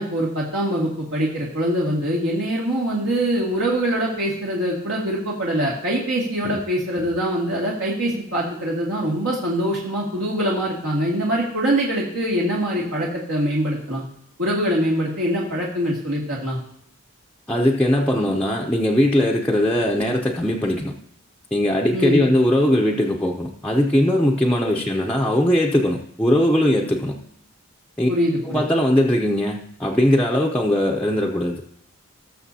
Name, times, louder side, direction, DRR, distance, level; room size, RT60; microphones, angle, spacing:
voice 1, 0.0-14.0 14.4-16.6 21.9-22.2 24.6-24.8 28.1-28.6, equal, 75° right, -5 dB, 2.2 m, -23 dB
voice 2, 17.5-20.9 21.5-27.2 28.0-28.1 28.5-31.6, left 1 dB, 5° left, -2 dB, 0.6 m, -20 dB
19.0 x 6.7 x 2.8 m, 0.73 s
head